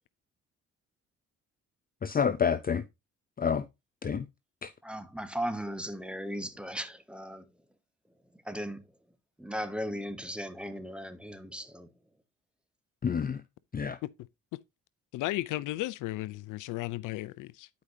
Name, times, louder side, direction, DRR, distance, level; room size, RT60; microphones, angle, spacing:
voice 1, 2.0-2.8 3.4-3.7 4.0-4.3 4.6-4.7 13.0-13.4 13.7-14.0, left 7 dB, 30° left, 0.6 m, -28 dB
voice 2, 4.8-7.4 8.4-8.8 9.4-11.9, equal, 5° right, 1.4 m, -37 dB
voice 3, 15.1-17.7, left 17 dB, 90° left, 0.5 m, -34 dB
12.0 x 5.2 x 2.7 m
cardioid pair, 90°, 30 cm